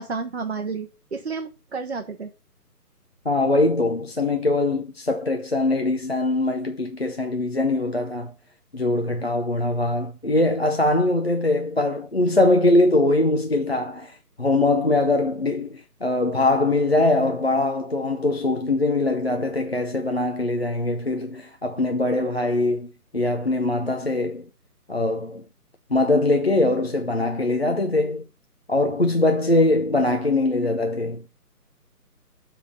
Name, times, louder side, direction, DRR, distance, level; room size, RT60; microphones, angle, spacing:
voice 1, 0.0-2.3, right 4 dB, 45° right, 0.7 m, -31 dB
voice 2, 3.3-8.3 8.7-24.5 24.9-25.4 25.9-28.3 28.7-31.2, left 2 dB, 45° left, 0.5 m, -22 dB
7.3 x 3.5 x 4.9 m
figure-of-eight pair, 170°, 48 cm